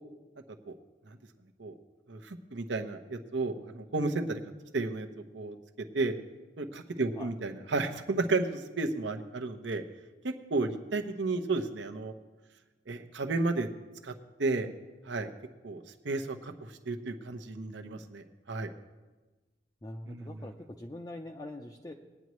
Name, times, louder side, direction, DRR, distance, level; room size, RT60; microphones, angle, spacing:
voice 1, 2.1-4.4 4.7-5.1 5.3-5.6 5.9-6.1 6.6-9.8 10.2-12.1 12.9-13.7 14.0-14.1 14.4-14.7 15.1-15.3 15.6-18.7 20.1-20.3, right 3 dB, 70° right, 6 dB, 0.9 m, -32 dB
voice 2, 19.8-21.9, left 1 dB, 20° left, 1 dB, 0.6 m, -43 dB
20.0 x 9.3 x 3.1 m, 1.2 s
head